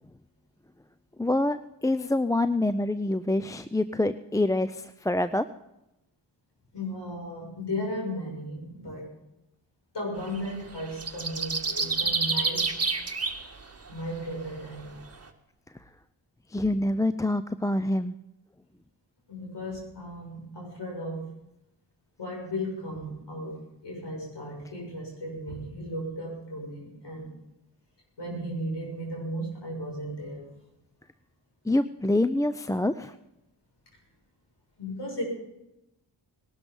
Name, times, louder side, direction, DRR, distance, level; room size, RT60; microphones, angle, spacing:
voice 1, 1.2-1.6 1.8-5.5 16.5-18.1 31.7-33.1, left 1 dB, 10° left, 12 dB, 0.5 m, -26 dB
voice 2, 6.7-9.1 9.9-12.8 13.9-15.0 16.6-16.7 19.3-21.3 22.2-27.3 28.2-30.5 34.8-35.2, equal, 65° left, -1 dB, 6.7 m, -35 dB
sound 1, 10.3-10.5 10.8-13.5 13.9-14.0, right 4 dB, 35° right, 1.8 m, -28 dB
19.5 x 12.0 x 5.5 m, 0.90 s
cardioid pair, 50°, 44 cm